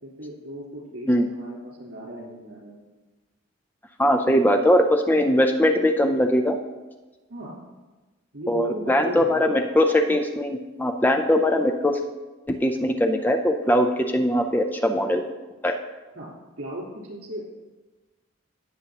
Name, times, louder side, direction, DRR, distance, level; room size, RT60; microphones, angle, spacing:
voice 1, 0.0-2.8 4.2-4.8 7.3-7.6 8.3-9.5 16.1-17.5, right 1 dB, 80° right, -3 dB, 3.9 m, -37 dB
voice 2, 4.0-6.6 8.5-12.0 12.5-15.2 15.6-15.7, left 1 dB, 10° left, 5 dB, 0.5 m, -21 dB
18.0 x 7.1 x 2.9 m, 1.2 s
head